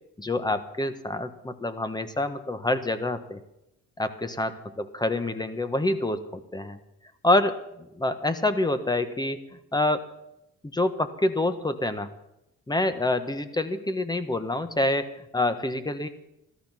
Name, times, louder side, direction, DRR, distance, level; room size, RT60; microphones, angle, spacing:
voice 1, 0.2-3.4 4.0-6.8 7.2-9.4 9.7-10.0 10.7-12.1 12.7-16.1, left 2 dB, 15° left, 10 dB, 1.3 m, -27 dB
14.0 x 13.5 x 5.8 m, 0.84 s
cardioid pair, 90°, 30 cm